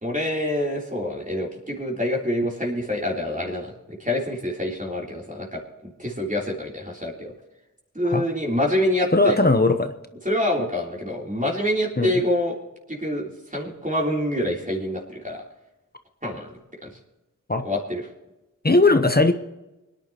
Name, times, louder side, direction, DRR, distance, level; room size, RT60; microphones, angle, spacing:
voice 1, 0.0-7.3 7.9-9.4 10.2-12.6 12.9-15.4 16.2-16.5 16.8-16.9 17.6-18.1, left 1 dB, 25° right, -3 dB, 3.4 m, -26 dB
voice 2, 9.1-9.9 12.0-12.1 17.5-17.6 18.6-19.3, left 2 dB, 30° left, 8 dB, 0.9 m, -18 dB
24.5 x 10.5 x 3.0 m, 1.0 s
wide cardioid pair, 50°, 32 cm